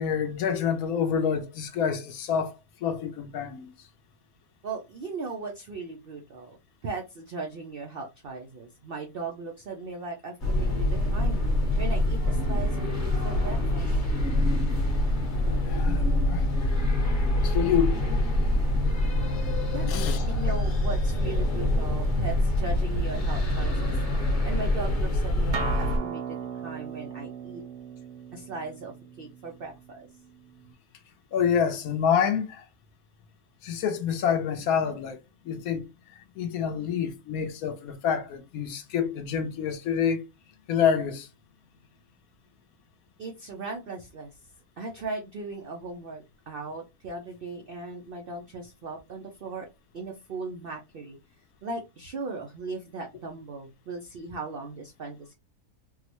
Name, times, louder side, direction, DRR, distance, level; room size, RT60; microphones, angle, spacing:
voice 1, 0.0-3.8 15.6-16.5 17.4-18.0 19.9-20.2 31.3-32.6 33.6-35.2 35.4-40.3 40.7-41.3, left 7 dB, 70° left, 1.0 m, -27 dB
voice 2, 4.6-6.6 6.8-11.4 11.8-14.0 19.7-19.9 20.2-24.0 24.4-27.6 28.3-30.1 43.2-44.4 44.8-49.7 49.9-51.2 51.6-55.3, right 3 dB, 75° right, 0.5 m, -38 dB
sound 1, 10.4-26.0, left 1 dB, 35° left, 1.0 m, -25 dB
Acoustic guitar, 25.5-30.7, right 6 dB, 60° right, 0.9 m, -38 dB
3.7 x 2.0 x 2.8 m
omnidirectional pair, 1.7 m